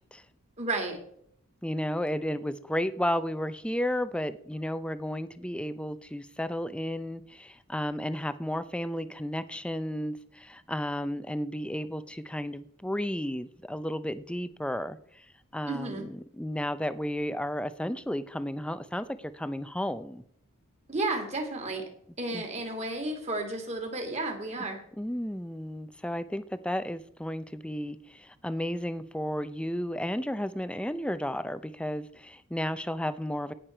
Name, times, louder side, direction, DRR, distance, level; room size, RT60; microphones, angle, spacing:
voice 1, 0.6-1.0 15.7-16.0 20.9-21.8 22.2-24.8, right 2 dB, 30° right, 2.5 m, -32 dB
voice 2, 1.6-15.3 15.5-20.2 22.3-22.4 25.0-33.5, equal, 5° left, 0.5 m, -33 dB
17.5 x 6.7 x 4.5 m
head